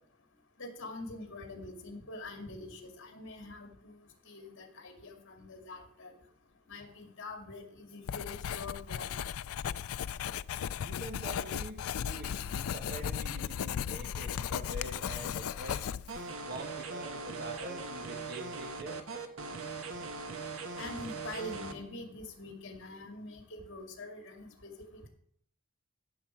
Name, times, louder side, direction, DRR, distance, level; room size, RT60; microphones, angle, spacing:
voice 1, 0.6-3.9 4.2-6.1 6.7-9.1 20.8-25.1, left 2 dB, 60° left, 4 dB, 2.5 m, -45 dB
Writing, 8.1-16.3, left 8 dB, 85° left, 0.4 m, -36 dB
voice 2, 10.8-15.9 16.4-19.0, right 1 dB, 50° right, 3 dB, 1.5 m, -45 dB
sound 1, 16.1-21.7, right 3 dB, 70° right, 1.3 m, -40 dB
16.0 x 7.1 x 4.6 m, 0.67 s
head